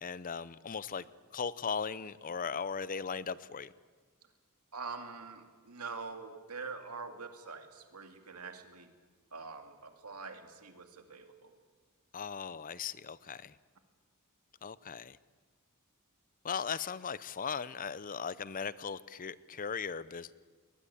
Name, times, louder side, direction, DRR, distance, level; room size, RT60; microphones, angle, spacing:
voice 1, 0.0-1.0 1.3-3.7 12.1-13.6 14.6-15.2 16.4-20.3, left 6 dB, 40° left, 18 dB, 0.6 m, -38 dB
voice 2, 4.7-8.9 9.3-11.5, right 4 dB, 85° right, 6 dB, 2.3 m, -45 dB
21.0 x 20.0 x 8.7 m, 1.5 s
head